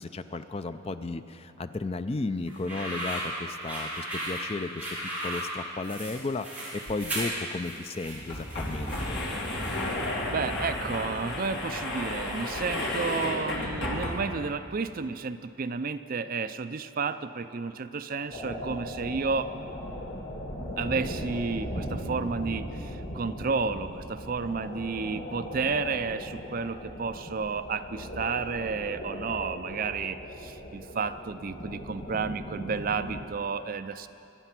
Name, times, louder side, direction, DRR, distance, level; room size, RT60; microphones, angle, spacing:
voice 1, 0.0-4.9 5.2-9.2, left 3 dB, 30° left, 10 dB, 0.4 m, -34 dB
sound 1, 2.5-10.0, right 1 dB, 10° right, 4.3 m, -36 dB
sound 2, 6.8-6.9 7.2-7.3 8.0-14.5, left 1 dB, 55° left, 2.3 m, -32 dB
voice 2, 10.2-19.5 20.8-34.1, right 5 dB, 40° right, 11 dB, 0.4 m, -32 dB
sound 3, 18.3-33.2, equal, 90° left, 4.8 m, -38 dB
24.5 x 9.1 x 6.0 m, 2.7 s
head